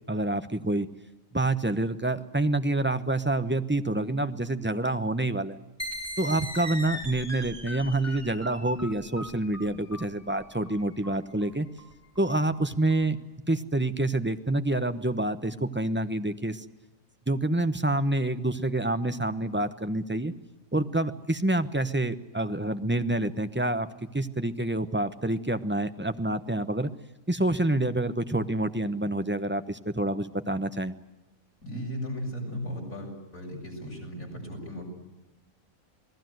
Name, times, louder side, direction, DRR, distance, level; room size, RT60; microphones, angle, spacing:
voice 1, 0.1-0.9 1.3-5.6 6.2-11.7 12.2-13.2 13.5-16.6 17.3-20.3 20.7-23.9 24.1-26.9 27.3-30.9, right 2 dB, 10° right, 10 dB, 0.8 m, -27 dB
sound 1, 5.8-13.0, equal, 10° left, 3.4 m, -39 dB
voice 2, 31.6-34.8, equal, 90° left, 0 dB, 7.8 m, -36 dB
28.0 x 19.5 x 7.9 m, 1.0 s
omnidirectional pair, 1.4 m